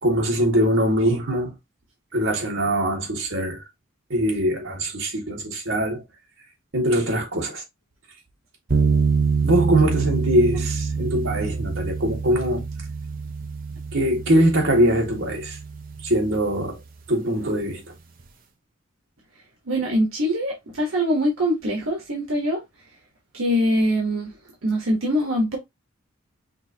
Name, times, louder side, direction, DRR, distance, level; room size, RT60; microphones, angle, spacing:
voice 1, 0.0-1.5 2.1-3.6 4.1-6.0 6.7-7.6 9.4-12.6 13.9-15.6 16.0-16.8 17.1-17.8, right 1 dB, 70° right, 1.9 m, -22 dB
sound 1, 8.7-16.9, right 5 dB, 45° right, 0.8 m, -26 dB
voice 2, 19.6-22.6 23.3-24.3 24.6-25.6, equal, 85° right, 1.5 m, -23 dB
5.9 x 2.8 x 2.8 m
head